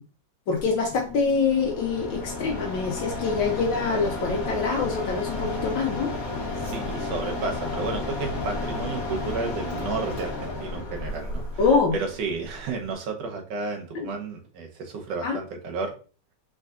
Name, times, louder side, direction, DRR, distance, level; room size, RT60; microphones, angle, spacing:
voice 1, 0.5-6.1 11.6-11.9 15.2-15.4, left 5 dB, 80° left, 1 dB, 1.5 m, -25 dB
Mechanisms, 0.5-12.9, left 2 dB, 50° left, 1.4 m, -32 dB
voice 2, 6.6-11.6 11.9-15.9, right 4 dB, 70° right, 3 dB, 1.5 m, -32 dB
4.8 x 3.6 x 2.4 m, 0.37 s
omnidirectional pair, 2.1 m